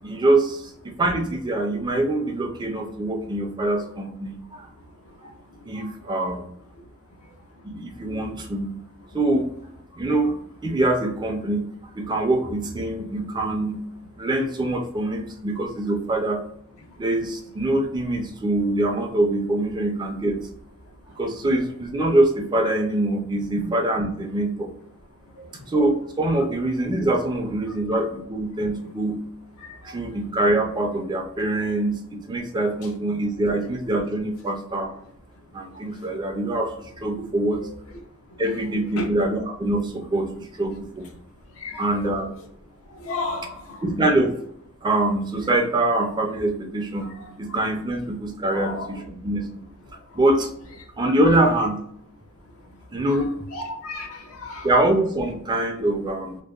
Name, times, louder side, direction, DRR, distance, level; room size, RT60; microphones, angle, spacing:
voice 1, 0.0-4.7 5.7-6.4 7.6-8.8 9.1-9.5 9.9-10.4 10.6-11.7 12.0-13.8 14.2-16.4 17.0-20.5 21.2-24.7 25.7-29.2 29.8-34.9 35.5-37.6 38.4-41.1 41.8-42.3 43.8-44.3 44.8-49.6 50.1-50.5 51.0-51.8 52.9-53.3 54.6-56.4, right 1 dB, 20° right, 0.4 m, -24 dB
voice 2, 43.0-43.6 48.5-48.9 53.5-54.7, left 2 dB, 70° left, 0.6 m, -32 dB
2.7 x 2.1 x 2.3 m
head